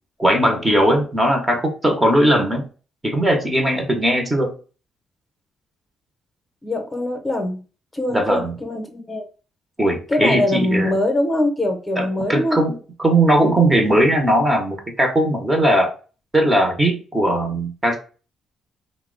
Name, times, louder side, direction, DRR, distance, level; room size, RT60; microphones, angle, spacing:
voice 1, 0.2-2.7 3.0-4.5 8.1-8.5 9.8-11.0 12.0-15.9 16.3-18.0, right 1 dB, 15° right, 4 dB, 0.7 m, -18 dB
voice 2, 6.6-7.6 7.9-9.2 10.1-12.7, left 1 dB, 20° left, 3 dB, 0.7 m, -22 dB
2.8 x 2.0 x 3.7 m, 0.36 s
cardioid pair, 90°, 0 cm